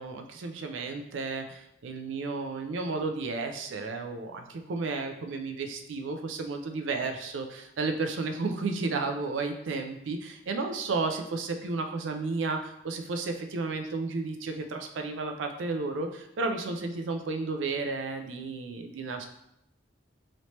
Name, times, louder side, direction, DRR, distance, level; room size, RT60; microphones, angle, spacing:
voice 1, 0.0-19.3, right 3 dB, 85° right, 5 dB, 0.4 m, -33 dB
3.1 x 2.8 x 2.9 m, 0.80 s
head